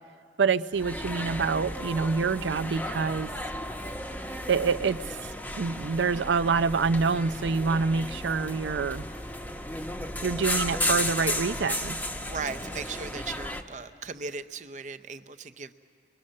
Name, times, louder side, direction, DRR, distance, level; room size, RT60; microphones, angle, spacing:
voice 1, 0.4-3.3 4.5-9.0 10.2-12.0, right 5 dB, 90° right, 14 dB, 0.5 m, -26 dB
sound 1, 0.7-13.6, left 1 dB, 10° left, 0.8 m, -34 dB
voice 2, 12.1-15.7, right 4 dB, 45° right, 11 dB, 0.7 m, -37 dB
29.0 x 22.5 x 6.5 m, 2.3 s
head